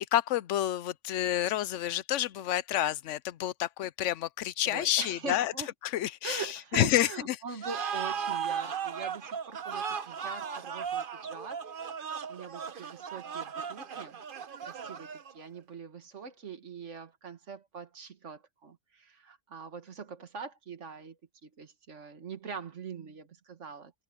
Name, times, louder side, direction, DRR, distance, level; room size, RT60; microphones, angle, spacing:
voice 1, 0.0-5.5 5.9-6.5 6.7-7.4, left 13 dB, 85° left, 0.9 m, -29 dB
voice 2, 4.7-5.7 6.2-11.7 12.3-14.2 14.6-23.9, right 5 dB, 80° right, 1.9 m, -43 dB
sound 1, 7.6-15.5, right 7 dB, 50° right, 1.0 m, -36 dB
omnidirectional pair, 1.2 m